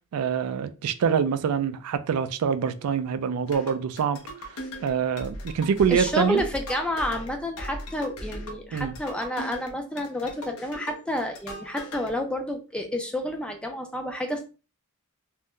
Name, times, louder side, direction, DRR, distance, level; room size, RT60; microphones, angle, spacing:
voice 1, 0.1-4.2 4.5-6.4 8.7-8.9, right 7 dB, 75° right, 0.3 m, -25 dB
sound 1, 3.5-12.1, equal, 85° left, 0.7 m, -39 dB
voice 2, 5.9-14.4, left 1 dB, 5° left, 0.4 m, -30 dB
2.5 x 2.1 x 3.5 m
head